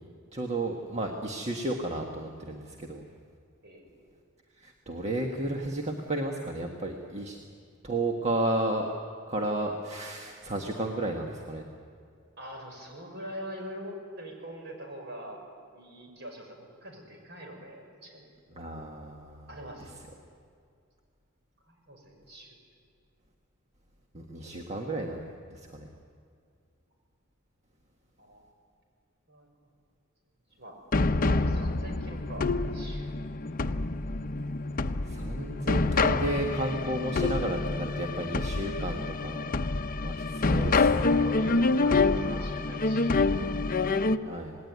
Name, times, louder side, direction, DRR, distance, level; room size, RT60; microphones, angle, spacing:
voice 1, 0.3-3.0 4.6-7.4 7.8-8.9 9.3-11.7 18.5-19.5 24.1-25.2 25.5-25.9 35.0-39.5 40.0-40.7 41.2-41.6 44.2-44.6, right 1 dB, 30° right, 2 dB, 1.6 m, -33 dB
voice 2, 12.4-15.4 15.7-18.3 19.5-19.9 21.7-22.6 28.2-28.5 29.3-29.5 30.6-30.8 31.2-33.2 40.4-44.4, equal, 55° right, 2 dB, 6.3 m, -43 dB
sound 1, 30.9-44.2, left 3 dB, 40° left, 0.7 m, -27 dB
27.0 x 19.5 x 9.5 m, 2.3 s
head